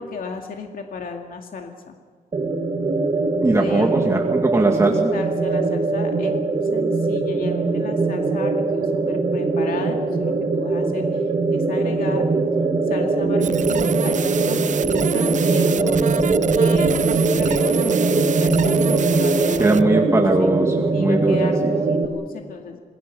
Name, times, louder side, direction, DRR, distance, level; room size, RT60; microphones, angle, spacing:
voice 1, 0.0-2.0 3.5-4.1 4.5-4.8 5.1-6.4 6.7-12.3 12.8-20.5 20.9-22.8, left 5 dB, 70° left, 3 dB, 2.3 m, -35 dB
sound 1, 2.3-22.0, right 3 dB, 35° right, 2.3 m, -21 dB
voice 2, 3.4-5.1 19.6-21.7, right 2 dB, 20° right, 1 dB, 2.0 m, -20 dB
sound 2, 13.4-19.8, right 8 dB, 55° right, 0.6 m, -29 dB
28.0 x 20.0 x 6.9 m, 1.5 s
wide cardioid pair, 125°, 15 cm